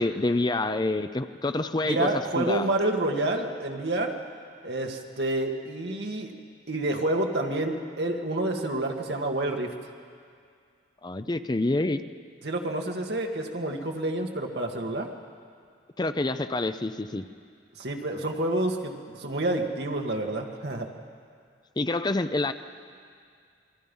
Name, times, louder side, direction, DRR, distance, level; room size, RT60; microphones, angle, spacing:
voice 1, 0.0-2.1 2.4-2.7 11.0-12.0 16.0-17.2 21.8-22.5, left 2 dB, 25° left, 10 dB, 0.5 m, -27 dB
voice 2, 1.8-4.1 4.6-6.3 6.7-9.7 12.4-15.1 17.8-20.9, right 1 dB, 65° right, 2 dB, 2.0 m, -28 dB
28.0 x 22.5 x 5.5 m, 2.3 s
head